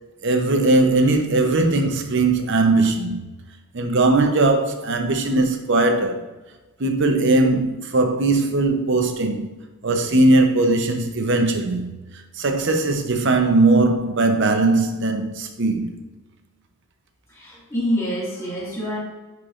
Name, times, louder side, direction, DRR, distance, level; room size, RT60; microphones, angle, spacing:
voice 1, 0.2-3.2 3.7-6.3 6.8-9.5 9.8-11.9 12.4-15.9, right 2 dB, 55° right, 0.7 m, -19 dB
voice 2, 17.3-19.0, equal, 15° left, 2.1 m, -26 dB
9.9 x 4.6 x 2.5 m
head